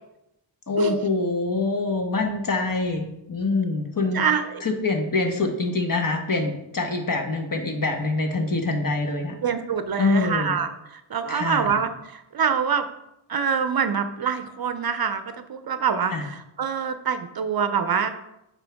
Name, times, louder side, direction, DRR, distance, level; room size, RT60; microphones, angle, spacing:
voice 1, 0.7-4.2 4.6-9.4 10.0-10.6 11.3-11.8 16.1-16.2, left 3 dB, 45° left, 4 dB, 1.2 m, -25 dB
voice 2, 4.1-4.6 9.4-12.9 13.3-16.1 16.6-18.1, right 7 dB, 50° right, 10 dB, 0.5 m, -25 dB
8.9 x 4.5 x 3.5 m, 0.86 s
wide cardioid pair, 85°, 48 cm